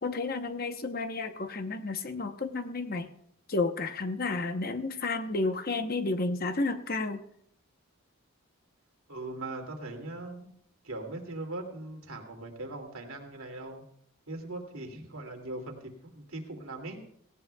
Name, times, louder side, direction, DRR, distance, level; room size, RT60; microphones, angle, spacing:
voice 1, 0.0-3.1 3.5-7.2, left 3 dB, 45° left, 8 dB, 0.8 m, -31 dB
voice 2, 9.1-10.5 10.8-13.8 14.3-15.8 16.1-17.0, right 2 dB, 75° right, 2 dB, 2.5 m, -40 dB
18.0 x 17.0 x 2.3 m, 0.70 s
head